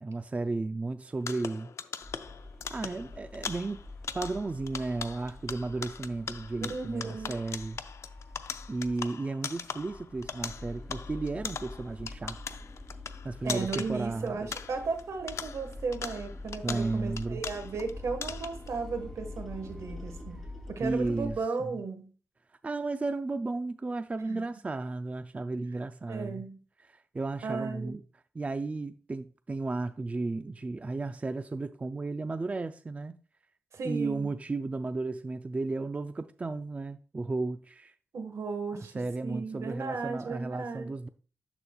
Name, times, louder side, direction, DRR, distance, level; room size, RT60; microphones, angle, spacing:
voice 1, 0.0-1.7 2.7-3.8 4.1-7.8 8.7-12.6 13.2-14.5 16.6-17.4 20.8-21.8 22.6-26.5 26.9-28.0 28.3-33.2 33.8-37.9 38.7-41.1, right 3 dB, 25° right, 0.4 m, -34 dB
sound 1, 1.2-15.0 15.3-17.9 18.2-18.7, left 6 dB, 65° left, 0.5 m, -40 dB
sound 2, 2.0-9.1 9.4-21.4, left 2 dB, 5° left, 2.6 m, -45 dB
voice 2, 6.6-7.4 13.4-22.1 24.2-24.5 26.1-26.6 27.4-28.0 33.7-34.3 38.1-40.9, right 4 dB, 75° right, 1.4 m, -35 dB
13.0 x 4.3 x 2.3 m
wide cardioid pair, 90°, 5 cm